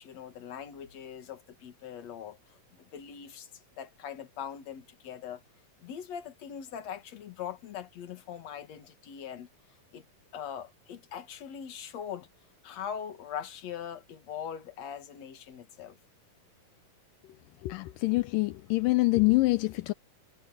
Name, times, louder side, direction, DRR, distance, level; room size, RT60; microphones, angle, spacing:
voice 1, 0.0-3.5 3.8-5.4 5.8-9.5 9.9-10.0 10.3-12.3 12.6-16.0, left 8 dB, 55° left, 2.9 m, -41 dB
voice 2, 17.6-19.9, left 22 dB, 80° left, 2.3 m, -25 dB
omnidirectional pair, 3.9 m